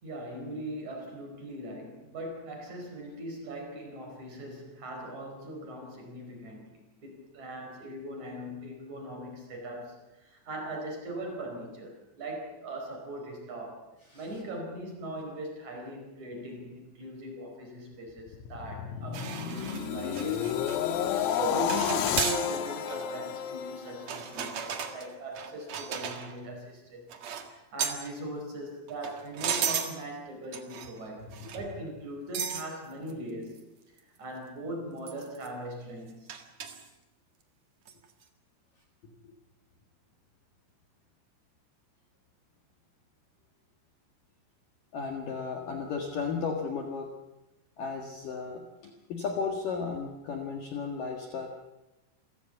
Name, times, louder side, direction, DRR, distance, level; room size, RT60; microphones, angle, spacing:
voice 1, 0.0-13.8 14.1-20.8 21.1-27.1 27.5-33.6 34.2-36.3, right 1 dB, 35° right, 2 dB, 5.6 m, -40 dB
sound 1, 18.2-24.5 24.9-25.2, left 9 dB, 85° left, 4.0 m, -31 dB
sound 2, 19.1-20.8 21.1-21.4 21.7-22.4 22.9-23.0 24.0-26.4 27.1-27.5 27.8-28.1 28.9-30.0 30.5-31.0 31.3-31.6 32.3-32.7 33.1-33.2 33.6-33.7 34.0-34.1 35.1-35.5 36.3-36.9 37.9-38.0, right 7 dB, 60° right, 1.9 m, -35 dB
voice 2, 39.0-39.3 44.9-47.1 47.8-51.5, left 5 dB, 55° left, 2 dB, 2.7 m, -35 dB
28.0 x 16.0 x 7.9 m, 1.0 s
omnidirectional pair, 5.9 m